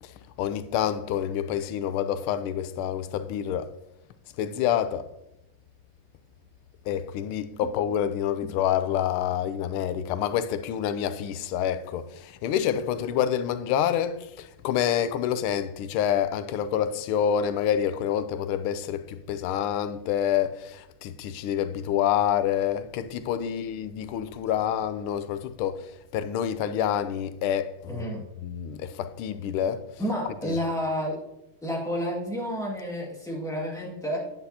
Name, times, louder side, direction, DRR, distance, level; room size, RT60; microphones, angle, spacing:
voice 1, 0.0-3.7 4.4-5.1 6.8-28.1 28.4-29.8 30.4-30.6, left 9 dB, 85° left, 1.5 m, -27 dB
voice 2, 27.9-28.2 30.0-31.2 31.6-34.2, equal, ahead, 1.7 m, -30 dB
9.0 x 7.8 x 2.8 m
omnidirectional pair, 2.3 m